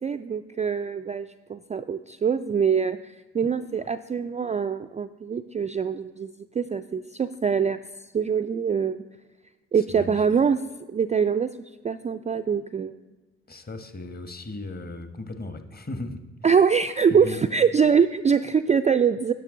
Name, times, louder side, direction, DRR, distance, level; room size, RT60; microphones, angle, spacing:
voice 1, 0.0-7.8 8.1-9.0 9.7-10.6 10.9-11.5 11.8-12.9 16.4-19.3, right 6 dB, 20° right, 11 dB, 0.3 m, -24 dB
voice 2, 9.8-10.2 13.5-16.2 17.1-17.4, left 2 dB, 30° left, 8 dB, 1.1 m, -36 dB
11.0 x 6.1 x 3.7 m, 1.2 s
hypercardioid pair, 45°, 34 cm